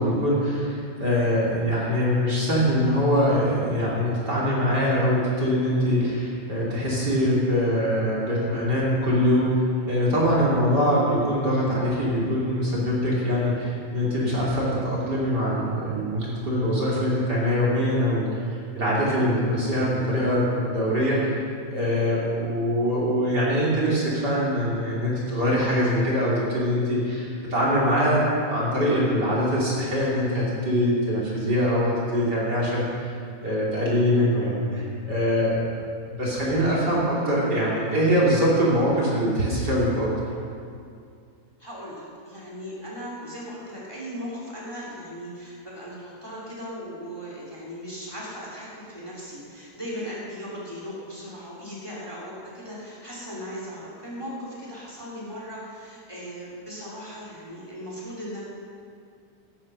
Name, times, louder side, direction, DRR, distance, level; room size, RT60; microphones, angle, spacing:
voice 1, 0.0-18.4 18.7-21.4 21.7-33.1 33.4-35.7 36.1-40.1, equal, 30° right, -6 dB, 2.4 m, -23 dB
voice 2, 41.6-58.4, equal, 10° left, -5 dB, 1.8 m, -38 dB
15.0 x 9.8 x 6.2 m, 2.3 s
omnidirectional pair, 5.7 m